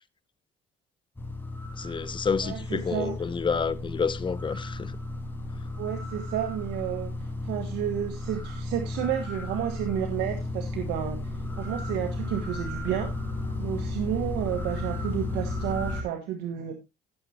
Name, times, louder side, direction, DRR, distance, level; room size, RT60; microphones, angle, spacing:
sound 1, 1.2-16.0, left 2 dB, 10° left, 4.6 m, -34 dB
voice 1, 1.8-4.9, left 5 dB, 30° left, 0.9 m, -29 dB
voice 2, 2.4-3.2 5.8-7.1 7.4-13.1 13.6-16.8, right 10 dB, 85° right, 1.7 m, -31 dB
16.0 x 7.3 x 2.9 m
cardioid pair, 110°, 17 cm